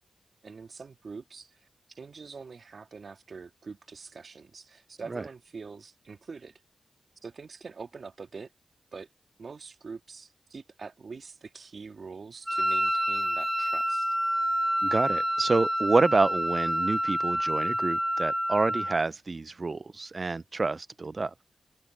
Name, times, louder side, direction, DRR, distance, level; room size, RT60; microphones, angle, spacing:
voice 1, 0.4-6.6 7.2-8.5 8.9-9.1 9.4-14.2, right 4 dB, 65° right, 2.1 m, -44 dB
Wind instrument woodwind instrument, 12.5-19.1, equal, 5° right, 1.0 m, -28 dB
voice 2, 14.8-21.3, right 3 dB, 50° right, 0.3 m, -28 dB
open air
cardioid pair, 40°, 0 cm